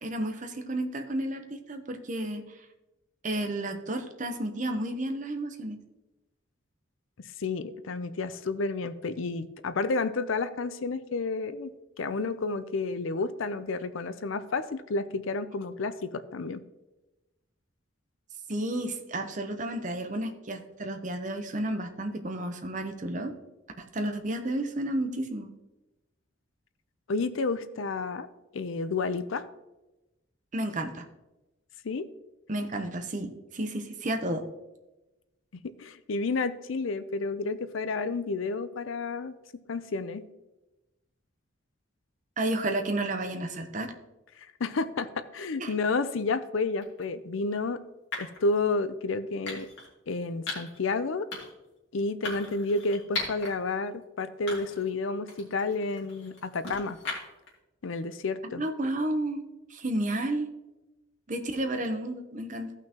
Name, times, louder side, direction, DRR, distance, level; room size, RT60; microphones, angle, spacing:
voice 1, 0.0-2.7 3.2-5.8 18.5-23.3 23.9-25.5 30.5-31.0 32.5-34.4 42.4-43.9 45.6-45.7 58.6-60.5 61.3-62.7, right 1 dB, 40° right, 6 dB, 0.8 m, -32 dB
voice 2, 7.4-11.7 12.0-16.6 27.1-28.3 28.5-29.5 31.8-32.1 35.6-39.3 39.7-40.2 44.4-47.8 48.2-49.7 50.1-51.3 51.9-57.0 57.8-58.6, left 3 dB, 80° left, 13 dB, 0.5 m, -30 dB
sound 1, 46.8-47.0 48.1-48.4 49.5-49.9 50.5-50.8 51.3-51.7 52.2-53.5 53.9-54.0 54.5-54.9 55.3-57.5, left 3 dB, 60° left, 2.7 m, -38 dB
15.5 x 5.8 x 3.0 m, 1.0 s
head